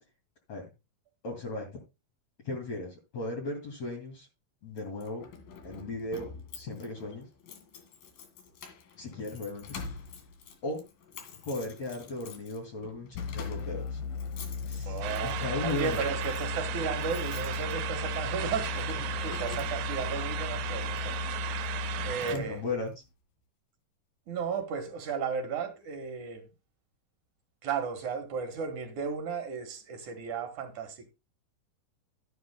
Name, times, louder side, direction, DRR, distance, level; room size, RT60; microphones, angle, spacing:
voice 1, 1.2-1.8 2.4-4.3 4.6-5.3 5.6-6.3 6.5-7.3 9.0-9.8 10.6-10.9 11.4-14.0 14.7-16.0 22.3-22.9, left 2 dB, 50° left, 3.4 m, -36 dB
Keys jangling, 4.8-20.1 20.9-21.2 21.6-21.7 22.0-22.9, left 6 dB, 70° left, 3.6 m, -48 dB
sound 1, 13.1-22.3, left 5 dB, 85° left, 1.4 m, -36 dB
voice 2, 14.9-21.2 22.0-22.6 24.3-26.5 27.6-31.1, right 6 dB, 60° right, 2.7 m, -34 dB
sound 2, 15.0-22.4, right 13 dB, 85° right, 1.6 m, -36 dB
12.5 x 11.0 x 2.2 m
omnidirectional pair, 4.3 m